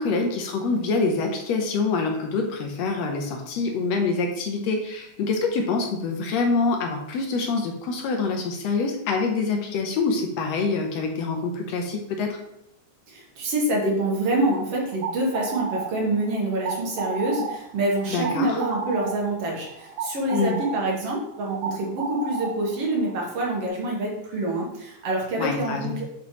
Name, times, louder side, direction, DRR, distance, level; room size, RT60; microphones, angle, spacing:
voice 1, 0.0-12.4 18.1-18.6 20.3-20.6 25.4-26.0, left 4 dB, 75° left, 3 dB, 1.8 m, -25 dB
voice 2, 13.1-26.0, right 1 dB, 60° right, -2 dB, 2.1 m, -26 dB
sound 1, 14.8-23.7, right 5 dB, 80° right, 1.3 m, -34 dB
6.9 x 5.2 x 3.0 m, 0.81 s
omnidirectional pair, 3.3 m